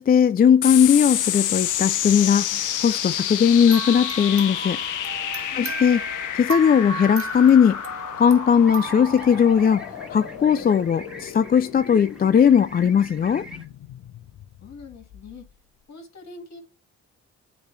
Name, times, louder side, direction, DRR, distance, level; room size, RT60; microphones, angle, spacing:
voice 1, 0.0-4.8 5.5-6.0 6.3-7.8 8.2-9.8 10.1-13.5, left 7 dB, 30° left, 0.4 m, -18 dB
sound 1, 0.6-15.4, left 11 dB, 80° left, 0.6 m, -30 dB
sound 2, 3.7-10.1, right 5 dB, 45° right, 1.4 m, -35 dB
voice 2, 5.5-5.9 14.6-15.4 15.9-16.6, left 3 dB, 60° left, 2.2 m, -43 dB
sound 3, 8.6-13.7, equal, 5° right, 1.8 m, -42 dB
9.2 x 3.1 x 3.3 m
supercardioid pair, 55°, 30 cm